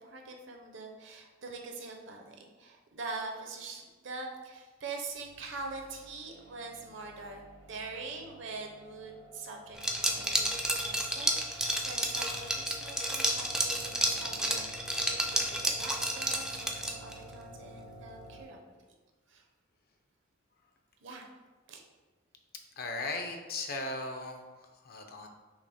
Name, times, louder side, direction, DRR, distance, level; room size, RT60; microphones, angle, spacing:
voice 1, 0.0-18.6 19.3-19.4 21.0-21.3 21.7-21.8, right 3 dB, 65° right, 2 dB, 0.7 m, -44 dB
sound 1, 5.1-18.4, right 1 dB, 70° left, 1.2 m, -52 dB
Liquid, 9.8-17.2, right 1 dB, 5° right, 0.3 m, -31 dB
voice 2, 22.8-24.4 24.8-25.3, left 2 dB, 50° left, 4 dB, 0.5 m, -37 dB
5.7 x 2.1 x 4.1 m, 1.2 s
head